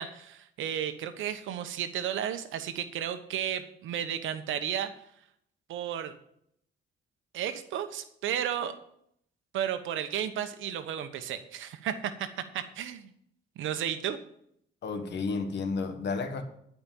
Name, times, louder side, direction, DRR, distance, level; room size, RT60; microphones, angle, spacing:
voice 1, 0.0-4.9 5.7-6.1 7.3-8.7 9.5-12.3 12.5-13.1 13.6-14.2, right 9 dB, 80° right, 1.0 m, -33 dB
voice 2, 14.8-16.4, left 4 dB, 60° left, 1.6 m, -32 dB
11.5 x 5.2 x 7.1 m
cardioid pair, 90°, 20 cm